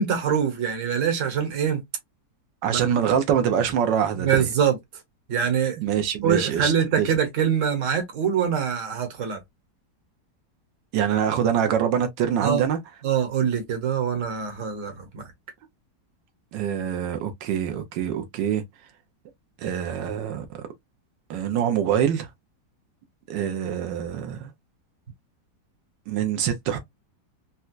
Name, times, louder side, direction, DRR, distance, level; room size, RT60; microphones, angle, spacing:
voice 1, 0.0-1.8 2.7-2.8 4.2-4.8 5.3-5.8 6.2-9.4 12.4-12.6 13.0-15.3, right 7 dB, 50° right, 1.3 m, -24 dB
voice 2, 2.6-4.5 5.8-7.1 10.9-12.8 16.5-18.6 19.6-20.5 21.3-22.3 23.3-24.5 26.1-26.8, right 8 dB, 90° right, 1.4 m, -24 dB
4.2 x 2.2 x 2.4 m
omnidirectional pair, 1.9 m